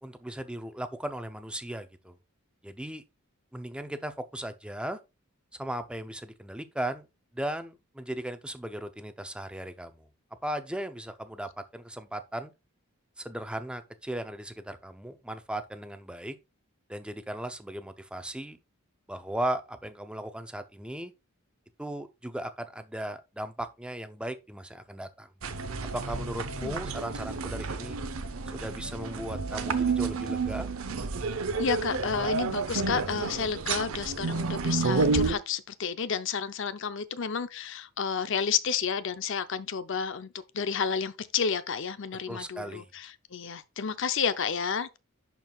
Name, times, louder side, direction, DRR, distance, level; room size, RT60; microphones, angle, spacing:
voice 1, 0.0-2.1 2.6-3.0 3.5-5.0 5.6-7.1 7.3-10.1 10.4-12.5 13.2-16.4 16.9-18.6 19.1-21.1 21.8-25.3 25.8-28.0 28.5-30.7 42.3-42.9, right 1 dB, 5° right, 0.6 m, -37 dB
sound 1, 25.4-35.3, right 4 dB, 80° right, 0.8 m, -30 dB
voice 2, 31.6-45.0, left 6 dB, 60° left, 0.6 m, -31 dB
11.0 x 4.6 x 2.3 m
head